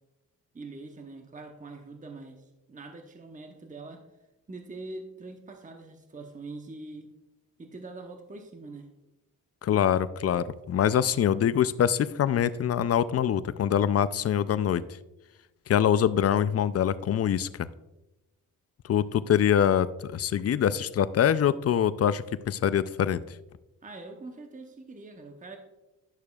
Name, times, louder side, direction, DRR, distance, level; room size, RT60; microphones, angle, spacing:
voice 1, 0.5-4.1 4.5-7.1 7.6-8.9 23.8-25.6, right 3 dB, 20° right, 5 dB, 0.9 m, -43 dB
voice 2, 9.6-14.8 15.7-17.7 18.9-23.2, left 9 dB, 45° left, 16 dB, 0.4 m, -24 dB
10.5 x 6.5 x 2.3 m, 0.99 s
cardioid pair, 70°, 37 cm